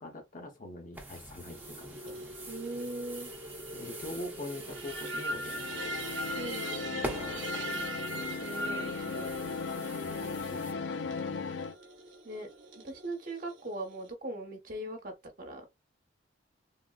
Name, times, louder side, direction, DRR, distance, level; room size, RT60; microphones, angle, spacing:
voice 1, 0.0-2.3 3.7-6.0 7.6-8.0 10.0-11.6, left 1 dB, 45° left, 0.8 m, -45 dB
sound 1, 0.9-10.7, right 1 dB, 10° right, 0.7 m, -45 dB
sound 2, 1.5-14.1, right 1 dB, 80° right, 0.9 m, -41 dB
voice 2, 2.5-3.3 6.3-7.1 8.4-9.3 12.2-12.5 12.8-15.6, right 1 dB, 50° right, 1.1 m, -40 dB
sound 3, 5.4-11.8, left 4 dB, 75° left, 0.4 m, -37 dB
3.7 x 2.1 x 2.3 m
head